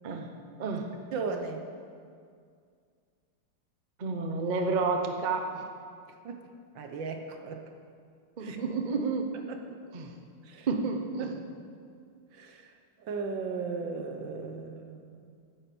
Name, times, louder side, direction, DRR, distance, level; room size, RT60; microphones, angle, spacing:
voice 1, 0.6-0.9 4.0-5.6 8.4-9.3 9.9-10.1 10.7-11.3, right 4 dB, 85° right, 4 dB, 0.4 m, -30 dB
voice 2, 1.1-1.7 6.2-7.7 8.4-8.6 9.5-9.8 10.4-10.7 11.2-11.7 12.3-12.7 13.0-15.3, right 4 dB, 65° right, 5 dB, 1.6 m, -37 dB
10.0 x 9.0 x 7.0 m, 2.2 s
omnidirectional pair, 2.3 m